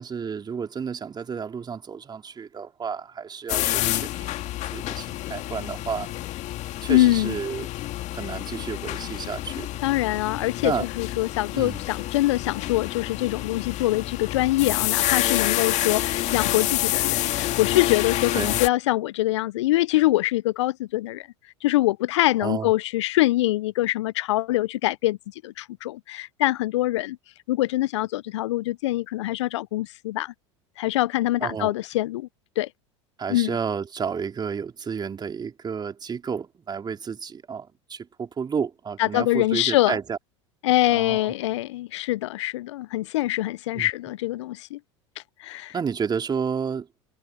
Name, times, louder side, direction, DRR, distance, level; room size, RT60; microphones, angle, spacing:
voice 1, 0.0-4.3 4.7-6.1 6.8-7.7 8.1-9.7 10.6-10.9 11.5-11.8 18.3-18.5 22.4-22.7 31.4-31.7 33.2-40.2 40.9-41.3 43.7-43.9 45.7-46.9, right 6 dB, 25° right, 4.2 m, -31 dB
sound 1, 3.5-18.7, left 15 dB, 50° left, 2.1 m, -28 dB
voice 2, 6.9-7.4 9.8-21.3 21.6-25.2 25.4-27.2 27.5-30.3 30.8-32.3 32.6-32.7 33.3-33.6 39.0-40.0 40.6-44.8 45.4-45.7, left 17 dB, 70° left, 0.5 m, -24 dB
hypercardioid pair, 75°, 16 cm